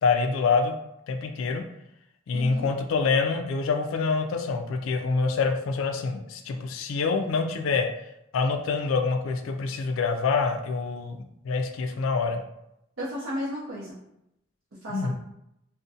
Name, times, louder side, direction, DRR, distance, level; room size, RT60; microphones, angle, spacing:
voice 1, 0.0-0.7 1.1-1.6 2.3-7.9 8.3-11.2 11.4-12.4 14.9-15.1, left 4 dB, 80° left, 5 dB, 0.3 m, -26 dB
voice 2, 2.3-2.7 13.0-14.0 14.8-15.1, equal, 75° right, -8 dB, 0.6 m, -33 dB
2.5 x 2.1 x 2.6 m, 0.82 s
head